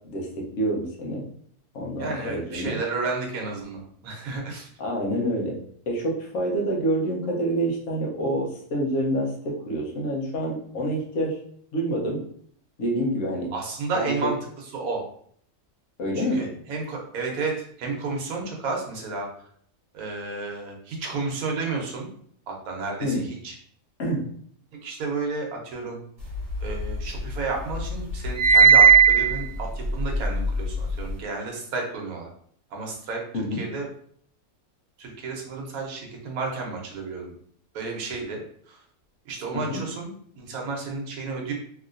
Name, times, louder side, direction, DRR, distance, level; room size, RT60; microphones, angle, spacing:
voice 1, 0.1-1.2 1.7-2.8 4.8-5.6 5.9-11.4 11.7-12.2 12.8-13.5 13.9-14.3 16.0-16.5 23.0-23.3 24.0-24.2 33.3-33.6 39.5-39.8, right 1 dB, 60° left, -2 dB, 1.1 m, -27 dB
voice 2, 2.0-4.7 13.5-15.0 16.1-19.3 19.9-22.1 22.5-23.5 24.8-26.0 26.6-32.3 32.7-33.2 33.5-33.9 35.0-37.3 37.7-38.8 39.2-41.5, right 3 dB, 75° right, 0 dB, 1.2 m, -32 dB
sound 1, 26.3-27.4 27.7-31.1, right 6 dB, 45° right, 1.2 m, -18 dB
3.0 x 2.8 x 2.5 m, 0.62 s
omnidirectional pair, 1.6 m